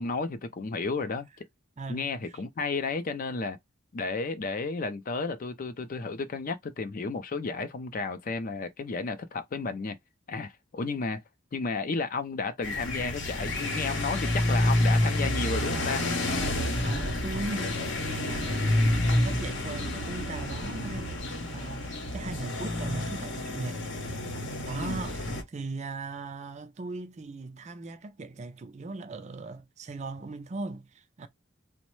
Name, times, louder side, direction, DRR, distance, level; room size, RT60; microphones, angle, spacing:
voice 1, 0.0-1.5 1.9-3.6 3.9-10.0 10.3-11.2 11.5-16.0 24.8-25.0, left 4 dB, 40° left, 0.4 m, -32 dB
voice 2, 1.8-2.4 16.8-23.8 24.7-31.3, right 3 dB, 35° right, 0.4 m, -39 dB
sound 1, 12.6-25.4, left 1 dB, 60° left, 0.8 m, -29 dB
3.0 x 2.1 x 3.1 m
head